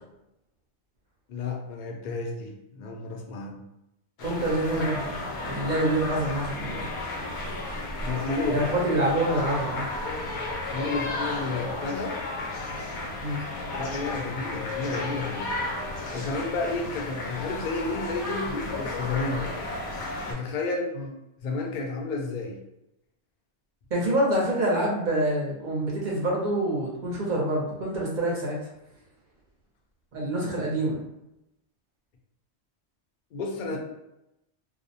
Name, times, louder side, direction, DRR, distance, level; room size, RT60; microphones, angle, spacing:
voice 1, 1.3-3.6 8.0-8.7 10.7-12.2 13.8-15.5 16.1-19.6 20.3-20.9 21.4-22.6 33.3-33.8, left 3 dB, 60° left, 0 dB, 0.6 m, -31 dB
sound 1, 4.2-20.3, left 2 dB, 75° left, 0.9 m, -33 dB
voice 2, 4.2-6.9 8.5-9.9 13.2-13.4 21.0-21.1 23.9-28.6 30.1-31.0, right 1 dB, 50° right, -3 dB, 0.8 m, -26 dB
2.4 x 2.0 x 2.7 m, 0.87 s
omnidirectional pair, 1.1 m